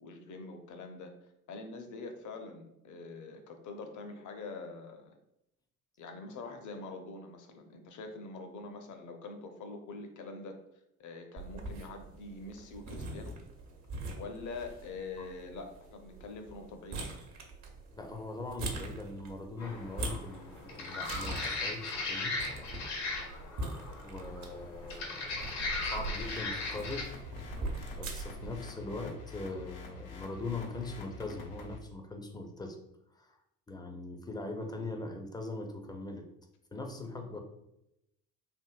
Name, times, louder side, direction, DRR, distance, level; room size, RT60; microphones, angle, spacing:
voice 1, 0.0-1.1 1.5-5.2 6.0-10.5 11.0-13.4 14.1-17.1, left 3 dB, 45° left, 5 dB, 0.7 m, -44 dB
sound 1, 11.4-28.5, right 2 dB, 45° right, 0.8 m, -43 dB
voice 2, 17.9-22.4 24.0-27.1 27.9-32.8 33.1-33.4 33.7-36.3 36.7-37.4, left 3 dB, 10° left, 4 dB, 0.5 m, -41 dB
sound 2, 19.6-27.0, left 3 dB, 70° left, 1.0 m, -38 dB
sound 3, 25.6-31.8, left 3 dB, 85° left, 0.6 m, -47 dB
3.5 x 2.6 x 2.3 m, 0.84 s
hypercardioid pair, 55°, 41 cm